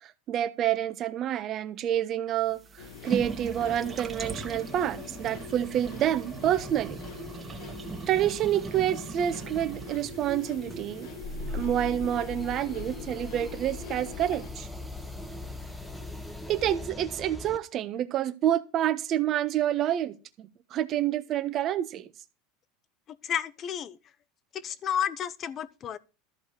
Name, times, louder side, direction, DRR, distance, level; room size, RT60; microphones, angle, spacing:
voice 1, 0.0-7.0 8.1-11.1 11.5-14.7 16.5-22.1, right 11 dB, 40° right, 1.2 m, -28 dB
sound 1, 2.4-16.8, right 4 dB, 20° right, 1.8 m, -41 dB
sound 2, 2.8-14.5, left 9 dB, 70° left, 1.5 m, -45 dB
sound 3, 11.2-17.6, left 3 dB, 10° left, 1.2 m, -39 dB
voice 2, 23.2-24.0 24.6-26.0, left 9 dB, 35° left, 0.9 m, -31 dB
13.5 x 4.8 x 8.2 m
supercardioid pair, 130°, 0 cm